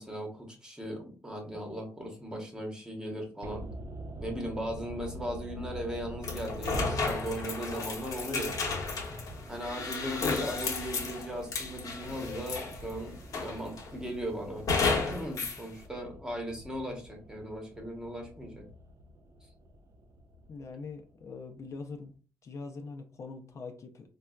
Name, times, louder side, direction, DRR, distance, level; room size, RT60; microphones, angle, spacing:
voice 1, 0.0-3.7 4.2-8.6 9.5-14.7 15.1-18.7, equal, 10° right, 1 dB, 0.9 m, -38 dB
sound 1, 3.4-21.6 21.9-22.0, equal, 55° right, 0.4 m, -46 dB
sound 2, 6.2-12.9 13.3-13.9 14.7-15.6, left 4 dB, 75° left, 0.8 m, -33 dB
voice 2, 20.5-22.1 22.4-24.1, left 4 dB, 55° left, 5 dB, 0.4 m, -43 dB
4.0 x 2.2 x 2.3 m, 0.38 s
wide cardioid pair, 125°, 6 cm